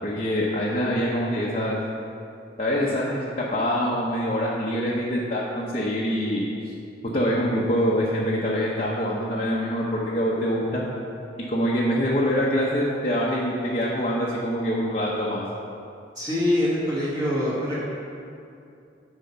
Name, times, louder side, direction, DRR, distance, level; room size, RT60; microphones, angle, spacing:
voice 1, 0.0-1.8 2.6-3.2 3.5-6.4 7.1-10.8 11.5-15.4, equal, 30° left, -6 dB, 0.8 m, -25 dB
voice 2, 16.1-17.8, left 1 dB, 20° right, -8 dB, 1.8 m, -24 dB
10.0 x 4.4 x 5.7 m, 2.6 s
head